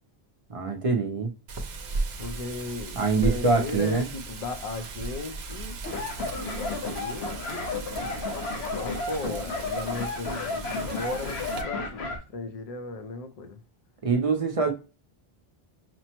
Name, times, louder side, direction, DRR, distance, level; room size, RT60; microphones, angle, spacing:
voice 1, 0.5-1.3 3.0-4.1 14.0-14.7, right 4 dB, 40° right, 0.6 m, -24 dB
Wind, 1.5-11.6, right 3 dB, 80° right, 0.9 m, -36 dB
voice 2, 2.2-5.8 6.4-7.3 8.7-13.6, left 3 dB, 45° left, 0.5 m, -36 dB
sound 1, 5.8-12.2, left 3 dB, 85° left, 1.1 m, -32 dB
6.0 x 2.0 x 2.9 m
omnidirectional pair, 1.1 m